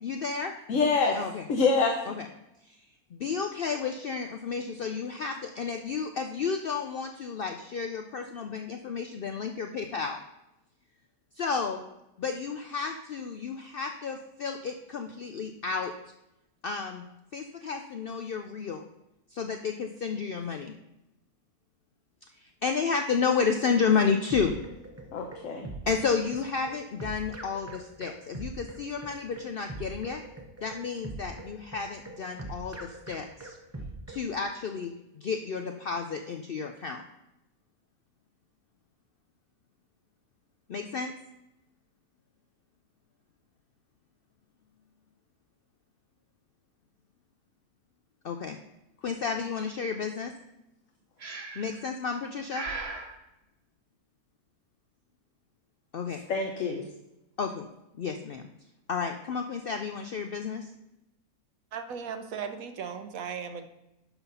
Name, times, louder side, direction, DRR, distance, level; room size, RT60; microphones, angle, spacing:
voice 1, 0.0-0.6 1.1-1.5 2.0-2.3 2.7-10.2 11.4-11.8 12.2-15.9 16.6-17.0 17.3-18.9 19.3-20.7 22.4-24.6 25.8-30.2 30.6-33.6 34.1-37.0 40.7-41.1 48.2-48.6 49.0-50.3 51.6-52.7 55.9-56.2 57.4-57.7 58.0-58.5 58.9-60.7, left 5 dB, 85° left, 6 dB, 0.5 m, -31 dB
voice 2, 0.7-1.1 1.5-1.9 25.1-25.7 56.3-56.8, left 4 dB, 60° left, 2 dB, 1.2 m, -25 dB
sound 1, 24.0-34.3, right 2 dB, 15° right, 0.6 m, -42 dB
Breathing, 51.2-51.8 52.5-53.1, right 3 dB, 50° right, 1.2 m, -37 dB
voice 3, 61.7-63.7, right 6 dB, 70° right, 8 dB, 1.1 m, -37 dB
11.5 x 4.0 x 5.5 m, 0.91 s
omnidirectional pair, 1.6 m